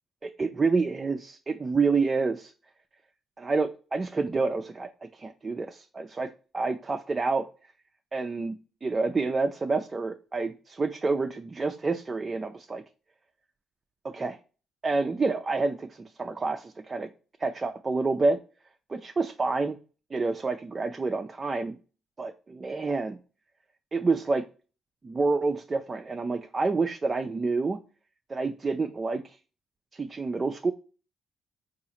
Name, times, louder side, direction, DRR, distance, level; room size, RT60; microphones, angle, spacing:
voice 1, 0.2-2.5 3.4-7.5 8.1-12.8 14.0-14.4 14.8-17.1 17.4-18.4 18.9-19.8 20.1-21.8 22.2-23.2 23.9-24.4 25.0-27.8 28.3-29.4 29.9-30.7, right 3 dB, 30° right, 6 dB, 0.3 m, -28 dB
3.9 x 2.4 x 2.8 m, 0.36 s
cardioid pair, 90°, 0 cm